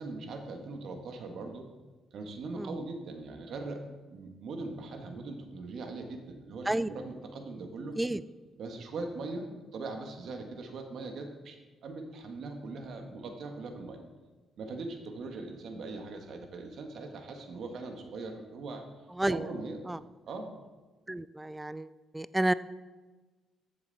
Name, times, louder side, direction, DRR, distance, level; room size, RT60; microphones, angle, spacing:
voice 1, 0.0-1.7 2.1-3.8 4.1-8.0 8.6-14.0 14.6-18.8 19.3-20.0 20.2-20.5, right 3 dB, 65° right, 4 dB, 1.6 m, -40 dB
voice 2, 21.1-21.9 22.1-22.5, right 1 dB, 10° right, 16 dB, 0.3 m, -30 dB
14.0 x 7.2 x 4.1 m, 1.2 s
cardioid pair, 90°, 0 cm